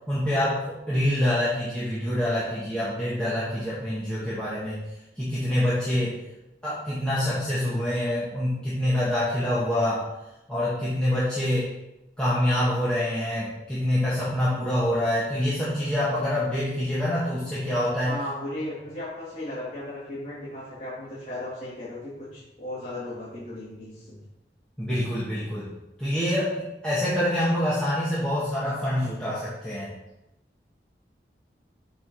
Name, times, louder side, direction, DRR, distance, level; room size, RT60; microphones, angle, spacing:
voice 1, 0.1-4.8 5.2-6.2 6.6-10.1 10.5-11.7 12.2-18.1 24.8-25.7 26.0-29.9, left 1 dB, 5° left, -10 dB, 1.6 m, -26 dB
voice 2, 18.0-24.2, left 1 dB, 40° left, -11 dB, 2.6 m, -36 dB
6.6 x 4.9 x 6.2 m, 0.93 s
head